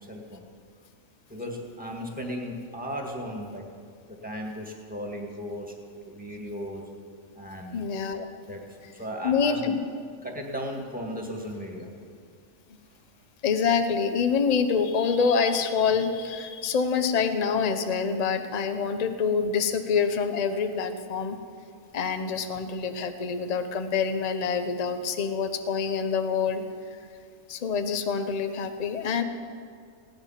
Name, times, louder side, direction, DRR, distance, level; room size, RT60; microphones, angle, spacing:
voice 1, 0.1-0.4 1.3-3.6 4.1-5.7 6.0-6.8 7.4-7.7 8.5-8.6 8.9-9.7 10.2-11.9, equal, 5° right, 1 dB, 1.7 m, -36 dB
voice 2, 7.7-8.3 9.2-9.9 13.4-21.4 21.9-26.6 27.5-29.2, left 6 dB, 35° left, 8 dB, 0.7 m, -26 dB
17.0 x 10.5 x 5.7 m, 2.2 s
omnidirectional pair, 1.5 m